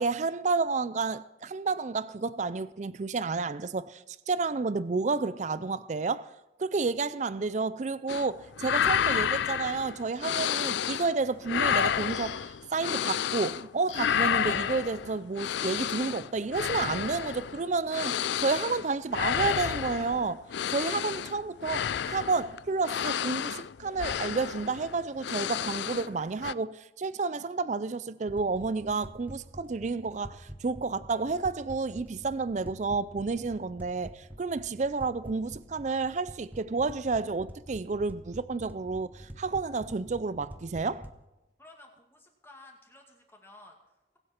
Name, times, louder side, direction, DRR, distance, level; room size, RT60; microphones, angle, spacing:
voice 1, 0.0-6.3 6.6-20.4 20.7-41.0, right 4 dB, 40° right, 0.4 m, -30 dB
sound 1, 8.1-8.3 8.6-11.2 11.4-13.7 13.9-26.1 26.4-26.5, left 8 dB, 65° left, 0.4 m, -31 dB
sound 2, 10.1-11.0 12.1-12.7 13.9-14.5 15.6-16.1 17.3-17.4 18.0-18.2, left 10 dB, 80° left, 1.3 m, -46 dB
sound 3, 28.3-41.2, equal, 10° right, 0.9 m, -47 dB
voice 2, 41.6-44.2, left 2 dB, 10° left, 2.2 m, -54 dB
23.0 x 8.0 x 4.4 m
head